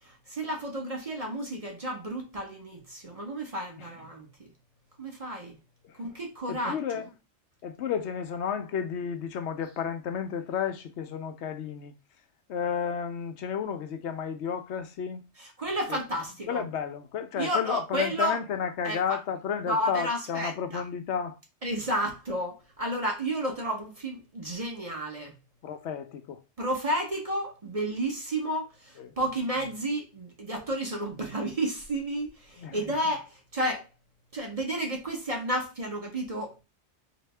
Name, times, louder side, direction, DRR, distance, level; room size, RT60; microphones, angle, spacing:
voice 1, 0.0-4.5 5.0-5.6 6.0-6.8 15.4-16.6 17.4-18.4 18.8-19.2 19.7-20.8 21.6-25.3 26.6-33.9 34.3-36.6, right 1 dB, 35° right, 0.9 m, -32 dB
voice 2, 6.5-7.1 7.6-11.9 12.5-15.2 15.9-16.0 16.5-21.4 25.6-26.4 29.0-29.1 32.6-32.8, left 7 dB, 75° left, 0.9 m, -32 dB
4.1 x 2.6 x 3.3 m
omnidirectional pair, 1.2 m